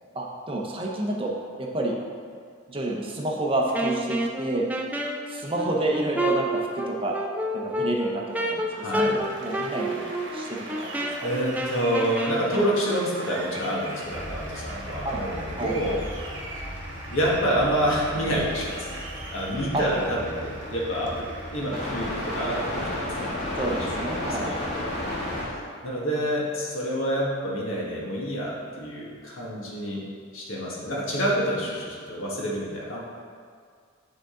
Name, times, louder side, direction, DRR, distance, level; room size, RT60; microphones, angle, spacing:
voice 1, 0.1-1.3 1.6-2.0 2.7-4.7 5.3-7.2 7.5-11.3 15.0-15.2 15.6-16.0 19.7-19.8 23.5-24.6, right 1 dB, 25° right, -1 dB, 0.7 m, -29 dB
Wind instrument woodwind instrument, 3.7-12.7, right 1 dB, 10° right, 0.4 m, -29 dB
voice 2, 8.7-9.1 11.2-16.0 17.1-21.1 21.5-23.4 23.6-24.9 25.3-25.6 25.8-30.0 30.3-33.0, equal, 90° left, -4 dB, 1.5 m, -28 dB
Applause, 8.9-22.5, right 2 dB, 65° right, 1.2 m, -41 dB
sound 1, 14.0-25.4, left 1 dB, 30° left, 1.6 m, -34 dB
9.9 x 3.8 x 3.8 m, 2.1 s
head